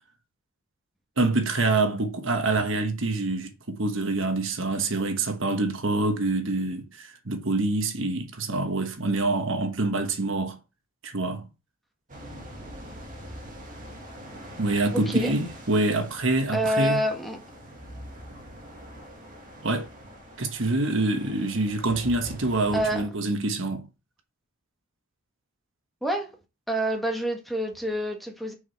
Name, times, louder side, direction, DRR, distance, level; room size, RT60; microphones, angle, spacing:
voice 1, 1.2-10.6 11.0-11.5 14.6-17.0 19.6-19.9 20.4-23.9, right 2 dB, 65° right, 1.3 m, -26 dB
sound 1, 12.1-23.0, equal, 40° right, 2.1 m, -43 dB
voice 2, 16.5-17.4 22.7-23.1 26.0-26.3 26.7-28.5, right 1 dB, ahead, 1.6 m, -27 dB
7.1 x 5.1 x 4.6 m
head